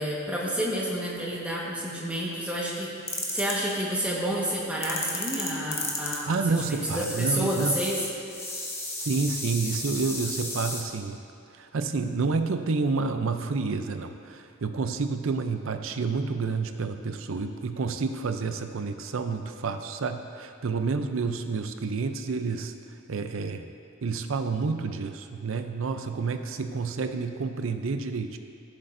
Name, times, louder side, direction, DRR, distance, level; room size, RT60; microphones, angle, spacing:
voice 1, 0.0-8.0, equal, 5° right, -5 dB, 1.4 m, -30 dB
sound 1, 3.1-3.7 4.8-10.8, left 2 dB, 10° left, 0.9 m, -34 dB
voice 2, 6.3-7.8 9.0-11.2 11.6-22.7 23.1-23.6 24.0-28.4, right 4 dB, 60° right, 7 dB, 0.5 m, -29 dB
15.5 x 7.5 x 2.6 m, 2.4 s
head